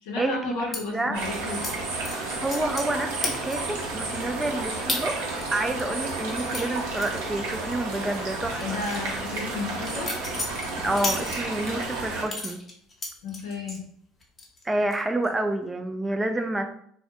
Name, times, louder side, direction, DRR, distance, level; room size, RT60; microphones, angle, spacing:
voice 1, 0.0-1.7 8.6-10.2 13.2-13.9, left 3 dB, 80° left, 1 dB, 0.6 m, -33 dB
sound 1, 0.7-0.8 1.6-1.7 2.1-2.9 3.2-3.8 4.2-4.3 4.9-5.0 5.4-7.7 8.0-8.2 8.6-11.7 12.3-13.8 14.2-14.6 14.9-15.3, left 2 dB, 30° left, 0.8 m, -33 dB
voice 2, 0.9-1.2 2.1-9.2 10.8-12.6 14.6-16.8, right 2 dB, 15° right, 6 dB, 0.3 m, -29 dB
sound 2, 1.1-12.2, right 2 dB, 80° right, 0.6 m, -32 dB
2.4 x 2.1 x 2.8 m, 0.65 s
supercardioid pair, 80°, 0 cm